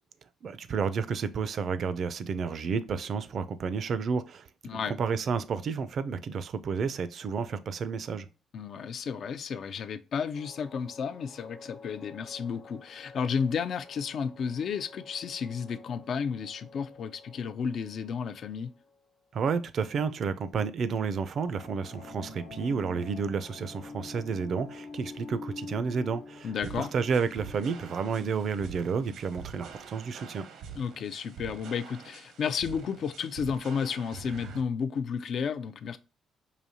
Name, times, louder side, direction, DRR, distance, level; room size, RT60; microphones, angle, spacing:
voice 1, 0.4-8.3 19.3-26.5 26.8-30.5, right 5 dB, 60° right, 0.4 m, -31 dB
voice 2, 4.6-4.9 8.5-18.7 26.4-26.9 30.8-36.0, left 6 dB, 60° left, 0.4 m, -32 dB
sound 1, 10.3-19.3, left 3 dB, 40° left, 1.1 m, -53 dB
sound 2, 21.4-28.8, left 3 dB, 90° left, 1.2 m, -45 dB
sound 3, 26.6-34.6, right 6 dB, 80° right, 0.7 m, -46 dB
4.9 x 2.7 x 2.7 m
cardioid pair, 90°, 0 cm